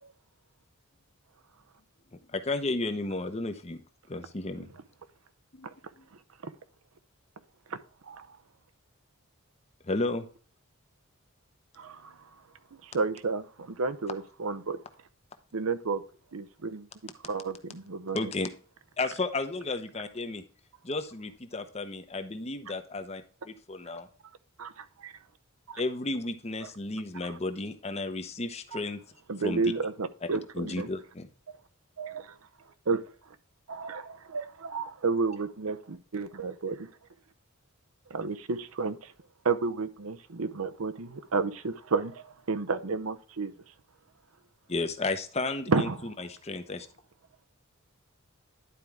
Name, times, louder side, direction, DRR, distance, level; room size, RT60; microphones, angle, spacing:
voice 1, 1.5-2.5 5.5-6.1, left 2 dB, 55° left, 1.6 m, -62 dB
voice 2, 2.3-3.8 4.1-4.7 9.8-10.3 18.1-18.5 19.0-20.4 20.8-24.1 25.8-29.0 29.4-29.6 30.5-31.3 44.7-45.9 46.2-46.9, left 2 dB, 30° left, 0.8 m, -33 dB
voice 3, 11.8-12.2 12.8-14.8 15.5-16.0 16.3-16.9 17.2-18.3 24.6-25.1 25.7-25.8 27.2-27.3 28.7-28.8 29.3-30.9 32.0-32.4 32.9-33.0 33.7-36.9 38.1-39.1 39.4-43.5 45.7-46.0, right 4 dB, 80° right, 0.7 m, -31 dB
11.0 x 4.6 x 3.5 m
head